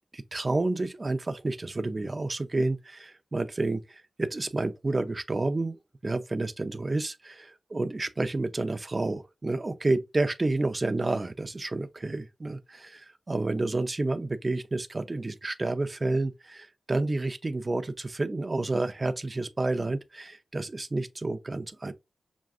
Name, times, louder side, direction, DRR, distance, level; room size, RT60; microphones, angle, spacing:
voice 1, 0.1-5.8 6.0-21.9, right 2 dB, 40° right, 0.6 m, -30 dB
6.1 x 2.3 x 2.5 m
cardioid pair, 45°, 0 cm